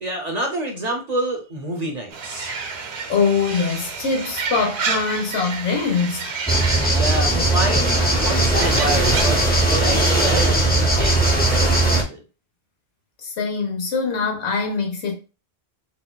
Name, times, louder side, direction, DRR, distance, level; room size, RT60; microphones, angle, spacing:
voice 1, 0.0-2.6 6.9-12.2, right 1 dB, 45° right, 0.6 m, -28 dB
sound 1, 2.1-9.2, right 5 dB, 80° right, 0.9 m, -30 dB
voice 2, 3.1-6.4 13.2-15.1, left 5 dB, 85° left, 1.1 m, -23 dB
sound 2, 6.5-12.0, right 1 dB, 10° left, 0.5 m, -18 dB
4.0 x 2.1 x 2.2 m
omnidirectional pair, 1.1 m